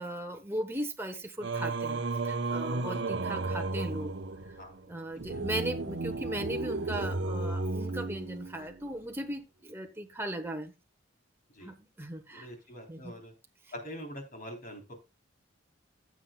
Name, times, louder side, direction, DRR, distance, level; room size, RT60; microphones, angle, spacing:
voice 1, 0.0-4.1 4.4-4.6 4.9-10.7 11.6-12.5 12.9-13.2, right 1 dB, 10° right, 4 dB, 1.0 m, -38 dB
Singing, 1.4-8.8, right 3 dB, 60° right, 0.8 m, -33 dB
voice 2, 12.3-13.3 13.7-14.9, equal, 45° left, 2 dB, 3.5 m, -44 dB
15.5 x 7.2 x 2.3 m, 0.26 s
head